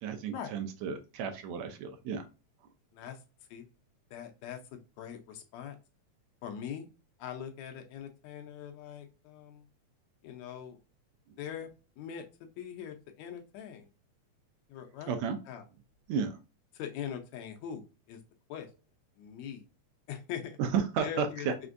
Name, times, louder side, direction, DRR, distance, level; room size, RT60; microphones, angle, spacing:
voice 1, 0.0-2.2 15.1-15.4 16.1-16.3 20.6-21.5, right 6 dB, 75° right, 6 dB, 1.8 m, -32 dB
voice 2, 4.1-5.8 6.4-6.9 7.2-9.6 10.2-10.8 11.4-11.7 12.0-13.9 14.7-15.2 15.5-15.6 16.7-18.2 18.5-18.7 19.2-19.7 20.1-20.6 21.0-21.5, left 9 dB, 75° left, 5 dB, 1.9 m, -42 dB
5.0 x 3.4 x 2.5 m, 0.32 s
omnidirectional pair, 3.3 m